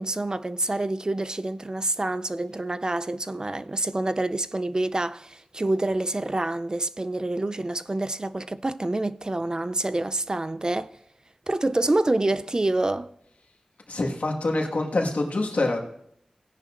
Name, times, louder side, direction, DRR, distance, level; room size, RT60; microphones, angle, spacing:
voice 1, 0.0-10.9 11.5-13.1, right 2 dB, 30° right, 0.4 m, -27 dB
voice 2, 13.9-15.8, left 2 dB, 70° left, 1.6 m, -25 dB
17.0 x 10.0 x 2.5 m
wide cardioid pair, 60°, 2 cm